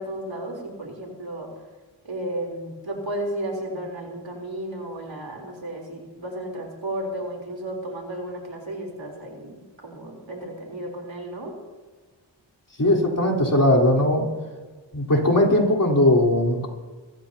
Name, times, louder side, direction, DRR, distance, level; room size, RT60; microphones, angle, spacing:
voice 1, 0.0-1.5 2.0-11.6, right 1 dB, 75° right, 0 dB, 3.9 m, -33 dB
voice 2, 12.8-14.3 14.9-16.7, left 1 dB, 45° left, -1 dB, 4.0 m, -19 dB
25.5 x 14.0 x 2.9 m, 1.4 s
wide cardioid pair, 45°, 45 cm